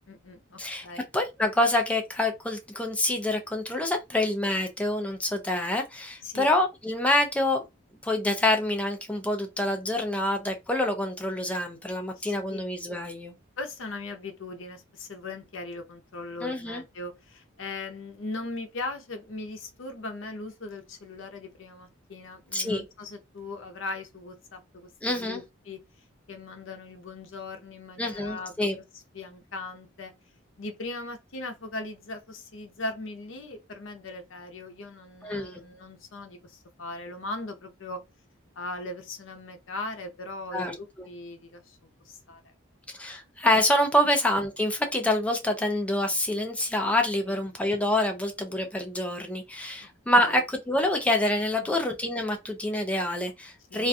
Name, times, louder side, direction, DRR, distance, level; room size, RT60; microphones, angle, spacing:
voice 1, 0.1-1.1 6.2-6.5 12.2-12.6 13.6-25.8 26.3-28.8 29.1-30.1 30.6-38.0 38.6-41.8 42.1-42.4 44.1-44.2 47.2-47.4 49.8-49.9 50.2-50.4 51.6-51.8 53.7-53.9, left 2 dB, 65° left, 0.6 m, -39 dB
voice 2, 0.6-7.6 8.0-13.3 16.4-16.8 22.5-22.8 25.0-25.4 28.0-28.8 35.2-35.6 40.5-40.7 42.9-53.9, left 1 dB, 5° left, 0.4 m, -26 dB
2.4 x 2.2 x 2.6 m
head